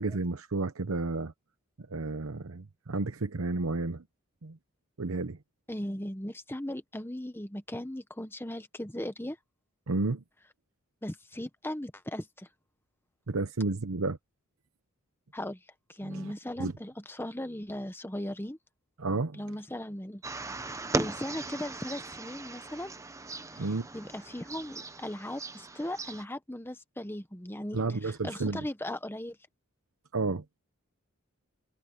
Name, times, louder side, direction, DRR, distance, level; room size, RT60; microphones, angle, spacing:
voice 1, 0.0-1.3 1.9-4.0 4.4-4.6 5.0-5.4 9.9-10.2 13.3-14.2 16.0-16.3 16.6-16.7 19.0-19.4 23.6-23.9 27.7-28.6 30.1-30.4, right 3 dB, 85° right, 0.9 m, -31 dB
voice 2, 5.7-9.4 11.0-12.5 15.3-15.6 15.9-18.6 19.3-20.2 20.6-22.9 23.5-23.7 23.9-29.4, left 1 dB, 10° left, 1.2 m, -38 dB
sound 1, 20.2-26.2, right 2 dB, 15° right, 0.7 m, -38 dB
head